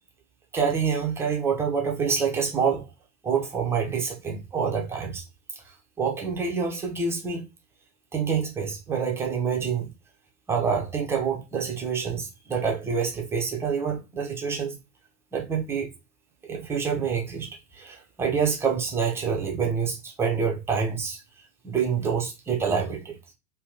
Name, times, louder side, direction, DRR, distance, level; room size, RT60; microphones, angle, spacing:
voice 1, 0.5-2.8 3.2-5.2 6.0-7.4 8.1-9.9 10.5-14.8 15.3-15.9 16.4-17.5 17.7-21.2 21.6-23.2, right 6 dB, 5° right, 0.4 m, -27 dB
3.2 x 2.3 x 3.6 m
figure-of-eight pair, 95°, 49 cm